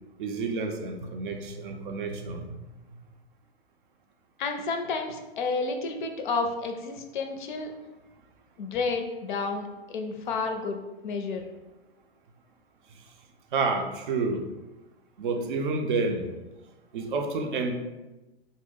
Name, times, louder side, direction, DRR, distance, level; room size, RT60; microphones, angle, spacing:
voice 1, 0.2-2.6 12.9-13.0 13.5-14.4 15.2-16.3 16.9-17.8, right 3 dB, 55° right, 4 dB, 0.5 m, -29 dB
voice 2, 4.4-7.7 8.6-10.8 11.0-11.4, left 4 dB, 50° left, 4 dB, 0.5 m, -31 dB
2.6 x 2.0 x 3.6 m, 1.1 s
figure-of-eight pair, 110°, 31 cm